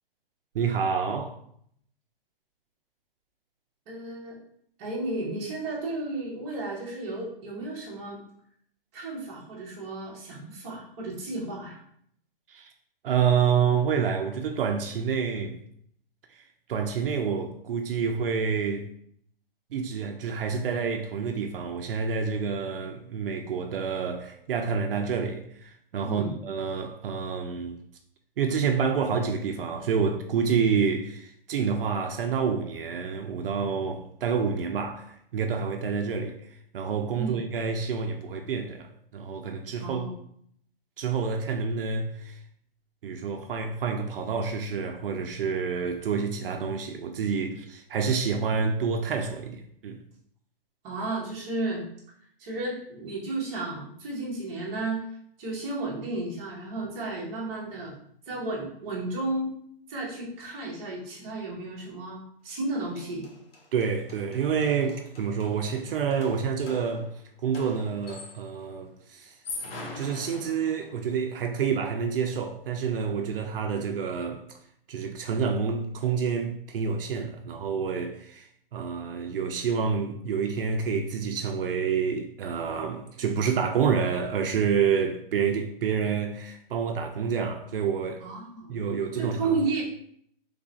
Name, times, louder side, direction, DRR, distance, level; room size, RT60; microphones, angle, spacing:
voice 1, 0.5-1.4 12.5-12.7 13.0-15.6 16.7-18.9 19.7-27.8 28.4-36.4 36.7-40.1 41.0-42.4 43.0-50.0 63.7-67.1 67.4-69.3 69.9-74.4 74.9-88.2 88.7-89.6, right 6 dB, 70° right, 0.5 m, -28 dB
voice 2, 3.9-4.4 4.8-8.2 8.9-11.8 26.0-26.3 37.1-37.4 39.8-40.1 50.8-51.9 52.4-55.1 55.4-57.9 58.3-59.5 59.9-63.2 88.2-88.8 89.2-89.8, right 2 dB, 20° right, 0.8 m, -33 dB
sound 1, 62.6-62.7 63.0-68.6 69.3-71.1, left 2 dB, 80° left, 1.0 m, -43 dB
3.3 x 2.3 x 3.9 m
hypercardioid pair, 165°, 29 cm